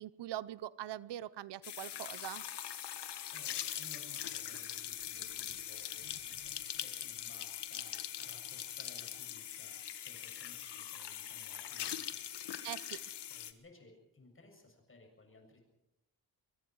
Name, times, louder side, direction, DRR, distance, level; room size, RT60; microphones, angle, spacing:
voice 1, 0.0-2.4 12.6-13.1, right 13 dB, 85° right, 19 dB, 0.7 m, -43 dB
sound 1, 1.6-13.5, left 10 dB, 80° left, 1.6 m, -42 dB
voice 2, 2.8-12.2 13.3-15.6, left 3 dB, 30° left, 2 dB, 7.5 m, -60 dB
24.0 x 23.5 x 4.7 m, 0.89 s
cardioid pair, 105°, 40 cm